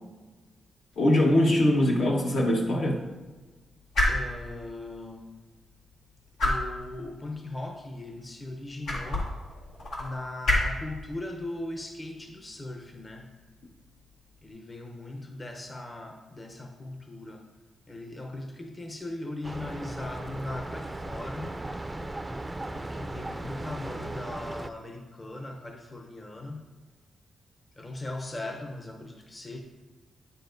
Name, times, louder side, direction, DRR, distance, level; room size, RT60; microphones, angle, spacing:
sound 1, 0.9-14.5, left 1 dB, 85° left, 1.8 m, -34 dB
voice 1, 1.0-3.0, left 1 dB, 70° left, -1 dB, 1.2 m, -22 dB
voice 2, 4.1-5.3 6.4-9.3 10.0-13.3 14.4-17.4 17.9-21.6 22.7-26.7 27.8-29.6, left 2 dB, 25° left, 3 dB, 0.7 m, -39 dB
sound 2, 19.4-24.7, right 2 dB, 15° right, 0.4 m, -37 dB
9.2 x 6.8 x 2.6 m, 1.3 s
cardioid pair, 95°, 0 cm